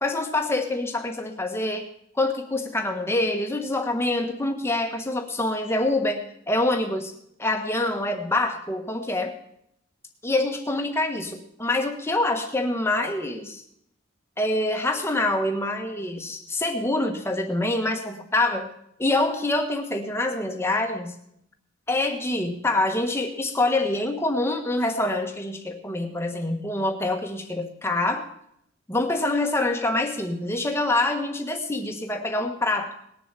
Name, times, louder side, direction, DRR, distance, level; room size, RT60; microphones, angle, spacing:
voice 1, 0.0-1.9 2.1-7.1 7.4-9.3 10.2-13.6 14.4-18.7 19.0-21.2 21.9-28.3 28.9-32.9, left 2 dB, 10° left, 4 dB, 1.3 m, -25 dB
19.5 x 7.1 x 7.5 m, 0.75 s
head